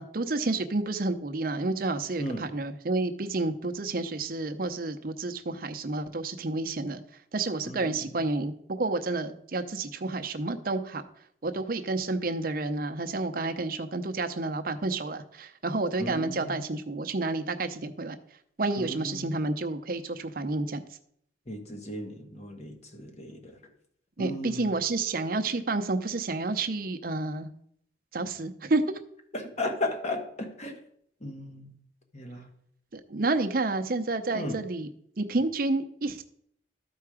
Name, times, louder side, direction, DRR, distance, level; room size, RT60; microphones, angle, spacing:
voice 1, 0.0-7.0 7.3-11.0 11.4-18.2 18.6-20.8 24.2-27.5 28.1-28.8 32.9-34.9 35.2-36.2, right 3 dB, 55° right, 0.7 m, -30 dB
voice 2, 7.6-8.2 16.0-16.6 18.8-19.3 21.5-23.5 24.2-24.7 29.3-30.8 31.2-31.7 32.1-32.4 34.3-34.6, left 1 dB, 40° left, 1.4 m, -35 dB
13.0 x 4.7 x 4.9 m
head